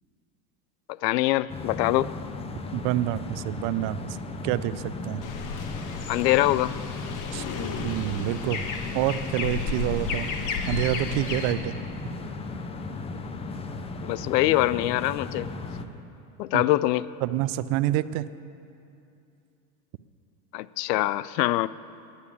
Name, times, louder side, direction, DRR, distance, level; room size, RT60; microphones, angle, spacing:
voice 1, 1.0-2.1 6.1-6.7 14.0-15.5 16.4-17.0 20.5-21.7, left 16 dB, 80° left, 18 dB, 0.5 m, -23 dB
sound 1, 1.5-15.8, left 3 dB, 15° left, 0.4 m, -36 dB
voice 2, 2.7-4.0 4.4-5.2 7.3-7.4 7.8-8.6 8.9-10.3 10.7-11.8 16.5-16.6 17.2-18.3, right 14 dB, 45° right, 15 dB, 0.5 m, -27 dB
sound 2, 5.2-11.5, left 4 dB, 40° left, 1.3 m, -33 dB
11.0 x 9.9 x 8.4 m, 2.6 s
supercardioid pair, 115°, 48 cm